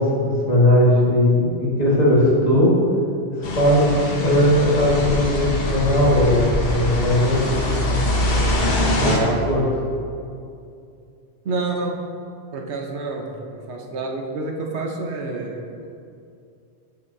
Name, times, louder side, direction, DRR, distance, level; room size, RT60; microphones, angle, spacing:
voice 1, 0.0-2.7 3.4-7.5 9.5-9.6, left 1 dB, 35° left, -6 dB, 1.6 m, -18 dB
sound 1, 3.4-9.2, left 1 dB, 60° left, 1.2 m, -23 dB
voice 2, 9.0-9.4 11.4-12.0 12.5-15.6, right 3 dB, 75° right, 1 dB, 1.1 m, -27 dB
13.0 x 5.6 x 2.7 m, 2.5 s
omnidirectional pair, 1.1 m